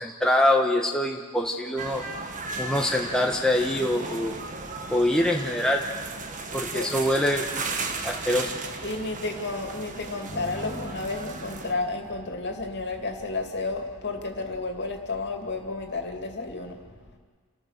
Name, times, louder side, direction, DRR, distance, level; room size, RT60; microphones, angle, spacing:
voice 1, 0.0-2.0 2.6-4.4 4.9-5.8 6.5-7.7 8.0-8.5, left 1 dB, 5° left, 0 dB, 1.2 m, -24 dB
sound 1, 1.8-11.7, right 3 dB, 40° right, 1.5 m, -35 dB
voice 2, 8.8-16.8, left 3 dB, 55° left, 4 dB, 2.6 m, -32 dB
sound 2, 10.3-13.7, left 1 dB, 65° right, 4.0 m, -44 dB
29.5 x 14.5 x 6.7 m, 1.5 s
head